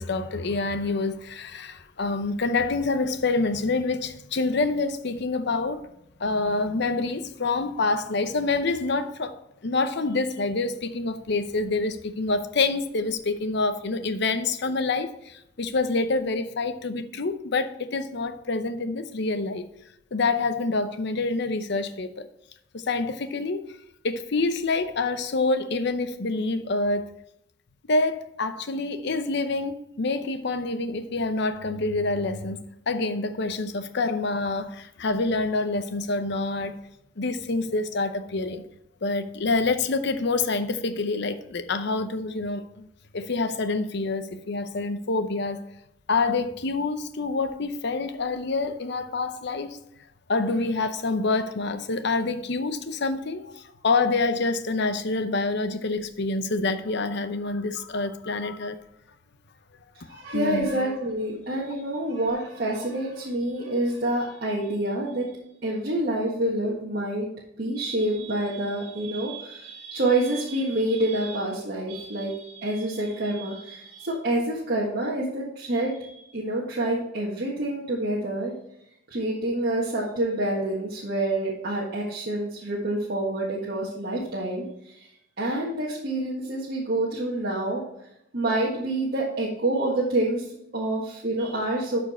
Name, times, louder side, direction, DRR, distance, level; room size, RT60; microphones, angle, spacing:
voice 1, 0.0-5.8 6.2-19.7 20.1-22.3 22.7-23.6 24.0-27.1 27.9-36.8 37.2-38.6 39.0-42.9 43.1-45.6 46.1-49.8 50.3-58.8 60.1-60.7, left 3 dB, 60° left, 0.7 m, -27 dB
voice 2, 59.9-65.3 65.6-67.3 67.6-78.5 79.1-85.1 85.4-87.8 88.3-92.0, right 1 dB, 55° right, 1.6 m, -27 dB
12.0 x 4.5 x 4.4 m
head